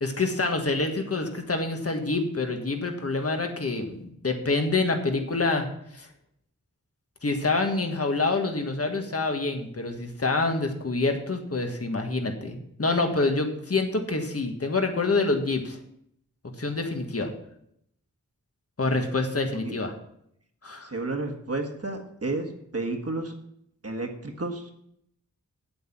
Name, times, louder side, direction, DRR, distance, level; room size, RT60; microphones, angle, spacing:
voice 1, 0.0-4.0 4.2-5.7 5.9-6.1 7.2-15.8 16.6-17.3 18.8-19.9 20.6-20.9, left 3 dB, 50° left, 4 dB, 1.6 m, -26 dB
voice 2, 20.8-23.3 23.8-24.7, right 2 dB, 50° right, 4 dB, 1.5 m, -32 dB
8.8 x 8.0 x 6.0 m, 0.72 s
wide cardioid pair, 80°, 31 cm